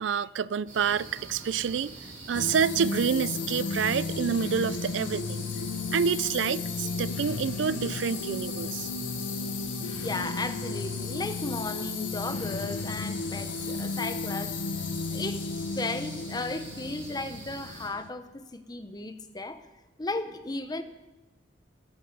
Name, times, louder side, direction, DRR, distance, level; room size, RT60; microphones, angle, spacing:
voice 1, 0.0-1.9 2.3-5.4 5.9-8.9, right 7 dB, 80° right, 0.4 m, -28 dB
sound 1, 0.7-17.9, right 2 dB, 45° right, 4.5 m, -45 dB
sound 2, 2.3-18.1, left 4 dB, 90° left, 0.7 m, -34 dB
voice 2, 10.0-15.4 15.8-19.6 20.0-20.8, left 2 dB, 20° left, 0.9 m, -35 dB
13.5 x 12.5 x 5.4 m
head